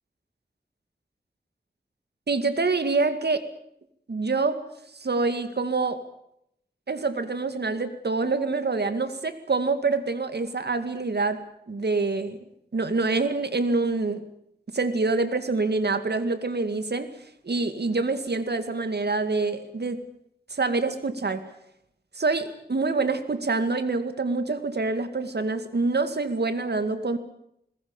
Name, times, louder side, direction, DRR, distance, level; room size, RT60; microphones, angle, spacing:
voice 1, 2.3-3.4 4.1-4.6 4.9-6.0 6.9-11.4 11.7-12.4 12.7-14.2 14.7-17.1 17.4-20.0 20.5-21.4 22.1-27.2, right 3 dB, 70° right, 10 dB, 2.3 m, -26 dB
21.0 x 19.5 x 8.9 m, 0.76 s
wide cardioid pair, 65°, 17 cm